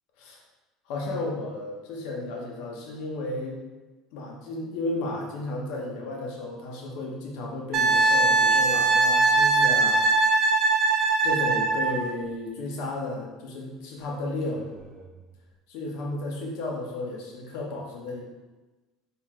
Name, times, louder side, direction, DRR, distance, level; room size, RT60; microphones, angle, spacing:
voice 1, 0.9-3.6 4.1-10.0 11.2-14.8 15.7-18.2, left 2 dB, 75° left, -1 dB, 1.0 m, -33 dB
Wind instrument woodwind instrument, 7.7-12.0 14.7-14.8, right 3 dB, 50° right, 0.7 m, -21 dB
4.6 x 2.8 x 3.6 m, 1.2 s
supercardioid pair, 115°, 0 cm